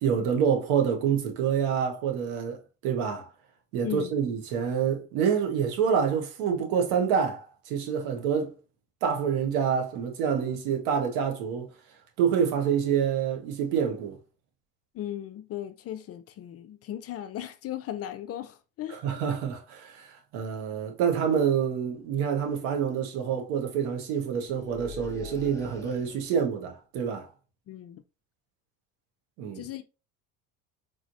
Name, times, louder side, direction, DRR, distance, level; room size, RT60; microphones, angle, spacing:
voice 1, 0.0-3.3 3.7-8.5 9.0-11.7 12.2-14.2 18.9-27.3 29.4-29.6, right 7 dB, 75° right, 1.1 m, -27 dB
voice 2, 3.8-4.1 14.9-19.0 27.7-28.0 29.5-29.8, left 12 dB, 40° left, 0.4 m, -37 dB
sound 1, 22.0-22.1 22.4-22.8 24.5-26.5, left 3 dB, 10° left, 0.8 m, -44 dB
4.1 x 3.1 x 2.5 m
supercardioid pair, 95°, 39 cm